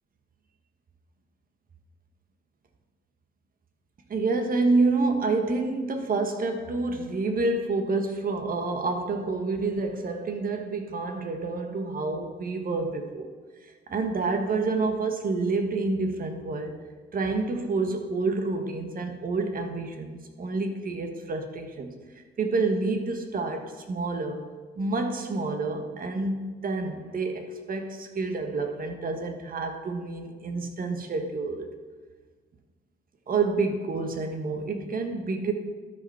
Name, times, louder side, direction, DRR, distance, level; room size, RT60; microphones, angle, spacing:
voice 1, 4.1-13.3 13.6-16.8 17.1-21.9 22.4-24.5 24.8-31.7 33.3-35.5, right 3 dB, 45° right, 5 dB, 1.4 m, -28 dB
12.5 x 5.3 x 5.6 m, 1.4 s
cardioid pair, 90°, 20 cm